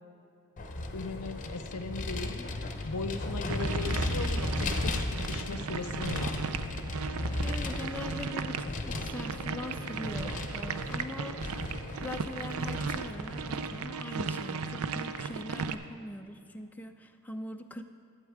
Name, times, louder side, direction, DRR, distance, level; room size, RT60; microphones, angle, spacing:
Vehicle, 0.6-13.8, left 2 dB, 35° left, 0.7 m, -35 dB
voice 1, 0.9-2.4 2.8-6.5, left 3 dB, 90° left, 10 dB, 0.6 m, -38 dB
sound 1, 3.5-15.7, right 5 dB, 70° right, 0.5 m, -36 dB
voice 2, 7.4-11.4 12.0-17.8, left 1 dB, 5° left, 4 dB, 0.4 m, -42 dB
12.0 x 8.1 x 4.9 m, 2.7 s
head